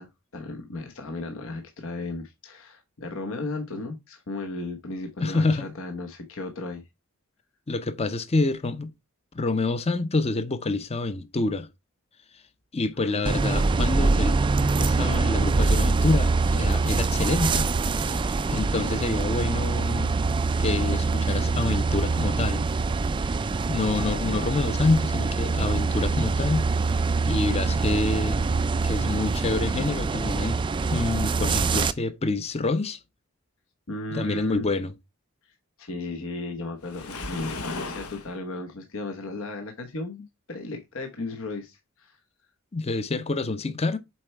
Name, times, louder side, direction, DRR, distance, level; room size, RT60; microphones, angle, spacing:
voice 1, 0.0-6.8 13.0-13.3 24.2-24.5 33.9-34.7 35.8-42.2, left 2 dB, 65° left, 1.0 m, -35 dB
voice 2, 5.2-5.7 7.7-8.9 9.3-11.7 12.7-14.3 14.8-17.7 18.0-20.1 20.6-22.6 23.7-26.7 27.2-28.4 28.8-30.6 30.9-33.0 34.1-34.9 42.7-44.0, left 3 dB, 30° left, 0.6 m, -27 dB
sound 1, 13.3-31.9, right 3 dB, 20° right, 0.3 m, -24 dB
Waves surf, 36.8-38.3, left 3 dB, 85° left, 1.1 m, -35 dB
7.5 x 4.6 x 3.3 m
head